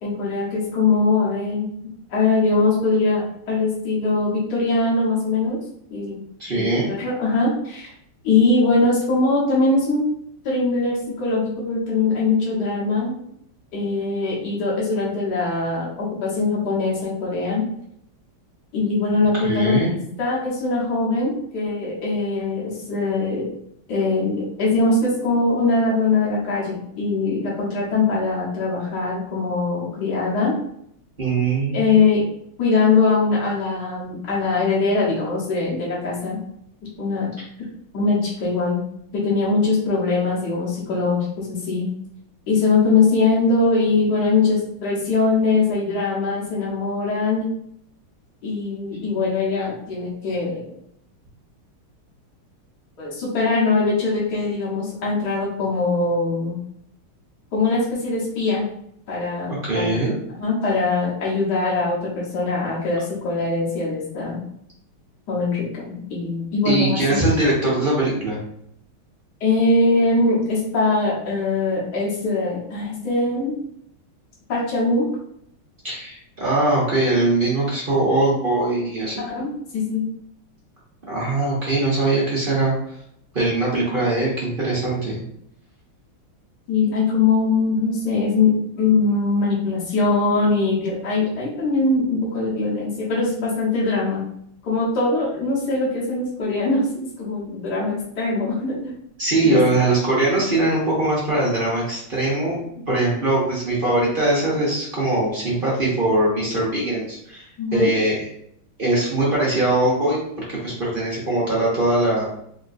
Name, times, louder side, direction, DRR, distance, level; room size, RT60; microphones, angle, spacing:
voice 1, 0.0-1.7 2.1-5.6 5.9-6.2 6.5-7.9 8.2-10.1 10.4-13.1 13.7-17.7 18.7-19.8 20.2-23.5 23.9-30.5 31.7-32.2 32.6-36.4 37.0-37.3 37.9-38.8 39.1-41.9 42.5-47.5 48.4-50.8 53.0-56.6 57.5-58.6 59.1-60.0 60.3-64.4 65.3-67.2 69.4-73.6 74.5-75.1 79.2-80.1 86.7-94.2 94.6-96.9 97.2-98.9 99.4-99.6 102.8-103.0 107.6-107.9, left 3 dB, 55° left, -6 dB, 1.7 m, -22 dB
voice 2, 6.4-6.9 19.4-19.9 31.2-32.0 59.5-60.1 66.6-68.4 75.8-79.2 81.1-82.7 83.3-85.2 99.2-102.6 102.9-108.2 108.8-110.2 110.5-112.3, right 2 dB, 40° right, -6 dB, 0.7 m, -21 dB
4.5 x 3.0 x 2.6 m, 0.71 s
omnidirectional pair, 2.3 m